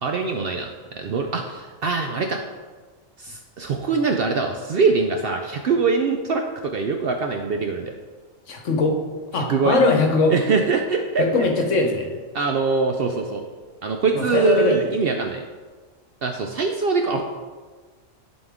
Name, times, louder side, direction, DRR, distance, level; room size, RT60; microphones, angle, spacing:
voice 1, 0.0-0.7 0.9-2.4 3.2-7.9 9.3-9.8 10.3-11.2 12.3-13.4 13.8-15.4 16.2-17.2, right 4 dB, 65° right, 4 dB, 0.6 m, -23 dB
voice 2, 8.5-9.0 9.3-10.3 11.2-12.2 14.1-15.0, left 3 dB, 70° left, 3 dB, 1.3 m, -20 dB
11.0 x 4.2 x 3.6 m, 1.4 s
omnidirectional pair, 1.4 m